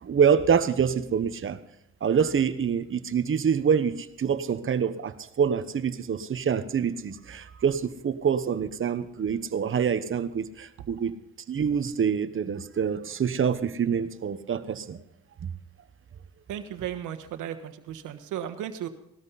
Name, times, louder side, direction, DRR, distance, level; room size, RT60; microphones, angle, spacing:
voice 1, 0.0-1.6 2.0-11.2 11.5-15.0, right 7 dB, 45° right, 12 dB, 1.1 m, -26 dB
voice 2, 16.5-18.9, right 10 dB, 85° right, 9 dB, 1.4 m, -35 dB
19.0 x 13.0 x 4.1 m, 0.77 s
cardioid pair, 90°, 30 cm